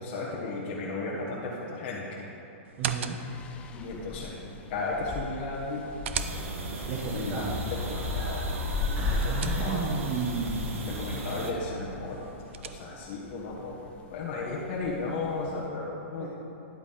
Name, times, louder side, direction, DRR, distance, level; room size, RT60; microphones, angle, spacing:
voice 1, 0.0-2.3 3.7-5.9 7.1-8.4 9.2-9.9 10.8-12.3 12.6-13.8 14.1-16.3, left 3 dB, 40° left, -5 dB, 1.1 m, -35 dB
sound 1, 2.6-3.5 5.5-6.8 8.8-10.1 12.0-13.2, right 8 dB, 65° right, 0.5 m, -38 dB
voice 2, 2.8-3.2 6.9-7.6 8.9-10.7 16.2-16.3, right 4 dB, 25° right, -2 dB, 0.8 m, -32 dB
sound 2, 3.2-15.6, left 3 dB, 15° left, 0.4 m, -37 dB
sound 3, 6.2-11.5, right 1 dB, 85° right, 1.3 m, -36 dB
10.5 x 8.1 x 3.8 m, 3.0 s
hypercardioid pair, 160°, 7 cm